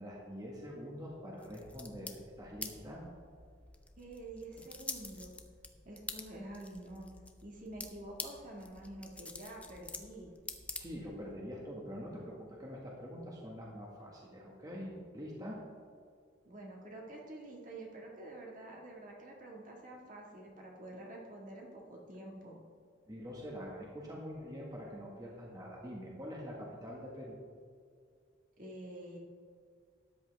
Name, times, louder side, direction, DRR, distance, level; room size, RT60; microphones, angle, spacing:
voice 1, 0.0-3.0 10.8-15.6 23.0-27.4, equal, 20° right, -3 dB, 1.5 m, -45 dB
sound 1, 1.4-11.3, left 3 dB, 5° left, 0.5 m, -48 dB
voice 2, 4.0-5.3 5.8-7.1 7.4-10.3 16.4-22.6 28.6-29.2, right 1 dB, 40° right, -1 dB, 1.7 m, -48 dB
13.0 x 10.0 x 3.4 m, 2.1 s
head